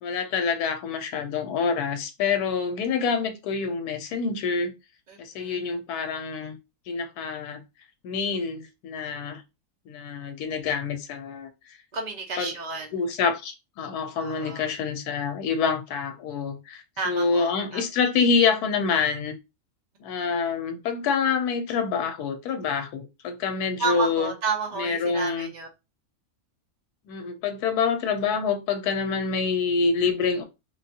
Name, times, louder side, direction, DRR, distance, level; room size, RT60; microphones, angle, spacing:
voice 1, 0.0-4.7 5.2-6.6 6.9-7.6 8.0-9.4 9.9-11.8 12.4-12.5 12.9-19.3 20.0-24.3 24.8-25.5 27.1-30.4, left 5 dB, 85° left, 1.1 m, -26 dB
voice 2, 5.1-5.6 11.9-12.9 14.2-14.7 17.0-17.8 23.8-25.7, right 4 dB, 45° right, 0.5 m, -31 dB
3.3 x 2.3 x 2.6 m
omnidirectional pair, 1.6 m